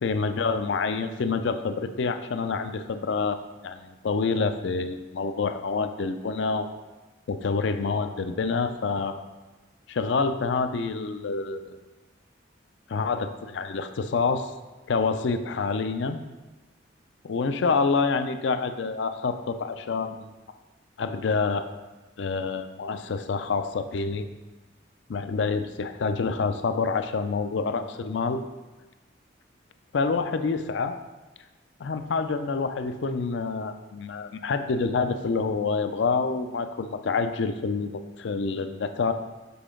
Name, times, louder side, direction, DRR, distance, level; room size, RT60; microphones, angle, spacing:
voice 1, 0.0-6.7 7.3-9.2 9.9-11.8 12.9-14.5 14.9-16.2 17.2-20.3 21.0-21.7 22.2-24.3 25.1-28.4 29.9-31.0 31.8-39.1, left 4 dB, 65° left, 9 dB, 0.4 m, -27 dB
6.9 x 4.5 x 3.7 m, 1.2 s
head